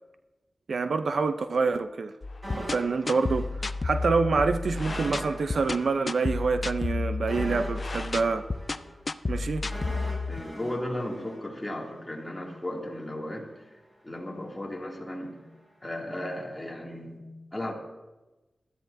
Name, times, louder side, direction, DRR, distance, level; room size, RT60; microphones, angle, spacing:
voice 1, 0.7-2.1 2.5-3.5 3.8-8.5 9.3-9.6, right 4 dB, 70° right, 0.5 m, -26 dB
sound 1, 2.2-10.4, left 3 dB, 40° left, 0.4 m, -32 dB
sound 2, 2.4-4.1 4.3-4.5 4.8-11.9 12.2-12.4, equal, 35° right, 4.4 m, -42 dB
voice 2, 10.3-13.5 14.0-15.4 15.8-17.3 17.5-17.7, left 1 dB, 15° left, 2.4 m, -35 dB
19.0 x 13.0 x 2.6 m
wide cardioid pair, 95°, 0 cm